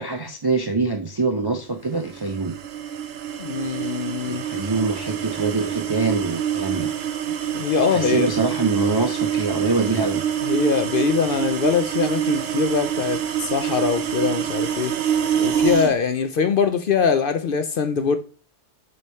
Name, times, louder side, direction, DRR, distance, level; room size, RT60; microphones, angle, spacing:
voice 1, 0.0-2.6 4.3-6.9 7.9-10.2, right 3 dB, 35° right, 0.4 m, -24 dB
sound 1, 2.0-16.0, right 9 dB, 65° right, 0.8 m, -26 dB
voice 2, 3.4-4.4 7.5-8.3 10.4-14.9 15.4-18.2, left 6 dB, 60° left, 0.6 m, -22 dB
6.7 x 3.3 x 4.2 m
omnidirectional pair, 1.2 m